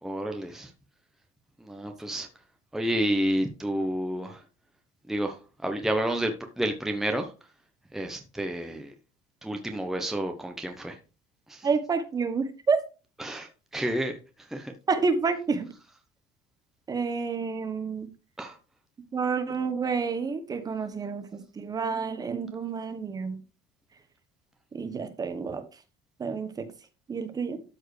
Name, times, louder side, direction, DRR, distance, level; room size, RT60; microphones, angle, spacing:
voice 1, 0.0-0.7 1.6-2.3 2.7-4.4 5.1-7.3 7.9-8.9 9.4-11.0 11.5-11.7 13.2-14.7 18.4-18.6, right 1 dB, ahead, 0.8 m, -30 dB
voice 2, 11.6-12.8 14.9-15.7 16.9-18.1 19.1-23.4 24.7-25.6 26.2-26.7 27.1-27.6, right 5 dB, 25° right, 1.1 m, -29 dB
13.0 x 4.5 x 3.2 m
cardioid pair, 145°, 16 cm